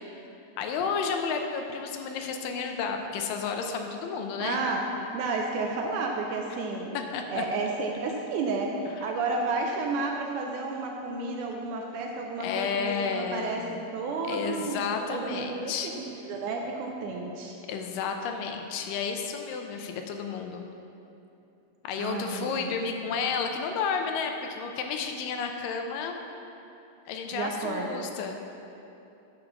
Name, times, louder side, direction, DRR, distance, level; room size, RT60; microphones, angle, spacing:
voice 1, 0.6-4.6 7.1-7.4 9.0-9.1 12.4-13.8 14.3-15.9 17.7-20.7 21.8-26.2 27.1-28.5, left 5 dB, 80° left, 4 dB, 2.2 m, -32 dB
voice 2, 4.4-4.9 5.1-6.9 7.3-17.6 22.0-22.8 27.3-28.0, right 3 dB, 80° right, 1 dB, 1.8 m, -32 dB
10.0 x 3.9 x 6.8 m, 2.8 s
omnidirectional pair, 4.0 m